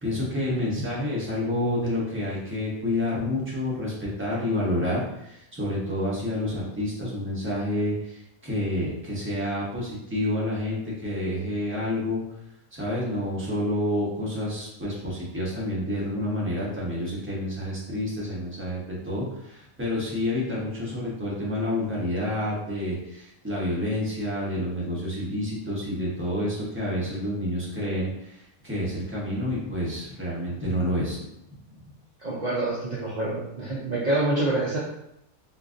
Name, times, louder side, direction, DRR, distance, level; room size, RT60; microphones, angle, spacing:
voice 1, 0.0-12.2 12.7-31.2, left 1 dB, 10° right, -6 dB, 0.7 m, -29 dB
voice 2, 32.2-34.8, right 2 dB, 60° right, -6 dB, 0.4 m, -26 dB
3.8 x 2.6 x 2.5 m, 0.83 s
omnidirectional pair, 1.5 m